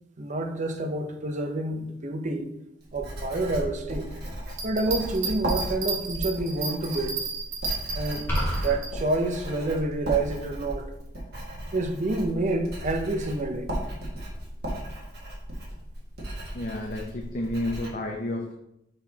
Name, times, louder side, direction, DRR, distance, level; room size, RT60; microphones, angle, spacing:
voice 1, 0.2-2.5 2.9-4.1 4.6-7.2 7.9-8.3 8.6-10.9 11.7-13.7, right 2 dB, 40° right, 0.7 m, -28 dB
Writing, 2.8-17.9, right 1 dB, 60° right, 1.9 m, -36 dB
Bell, 4.5-8.9 9.4-9.5, right 4 dB, 80° right, 1.6 m, -32 dB
sound 1, 8.3-8.8, equal, 15° left, 2.1 m, -26 dB
voice 2, 16.5-18.5, left 1 dB, 45° left, 0.7 m, -31 dB
6.6 x 5.8 x 2.9 m
head